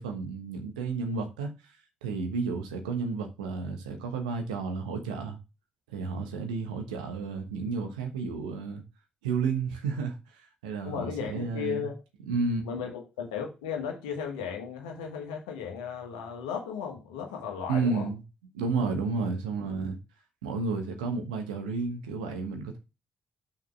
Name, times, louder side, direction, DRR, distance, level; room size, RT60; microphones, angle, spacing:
voice 1, 0.0-1.5 2.0-5.4 5.9-8.8 9.2-11.9 12.3-12.7 17.7-18.2 18.5-20.0 20.4-22.8, right 4 dB, 75° right, 1.1 m, -31 dB
voice 2, 10.8-12.0 12.6-18.1 19.1-19.2, left 7 dB, 75° left, 1.5 m, -35 dB
6.4 x 5.7 x 3.3 m
figure-of-eight pair, 40°, 4 cm